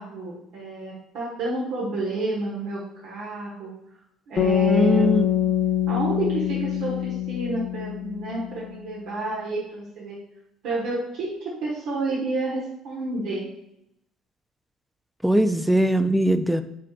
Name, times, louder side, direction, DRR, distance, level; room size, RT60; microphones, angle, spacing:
voice 1, 0.0-3.7 4.3-5.1 5.9-10.2 10.6-13.4, right 2 dB, 75° right, -5 dB, 1.2 m, -30 dB
sound 1, 4.4-8.6, left 10 dB, 40° left, 0.9 m, -24 dB
voice 2, 4.7-5.3 15.2-16.6, right 1 dB, 5° right, 10 dB, 0.4 m, -20 dB
5.8 x 3.4 x 2.4 m, 0.80 s
supercardioid pair, 70°, 0 cm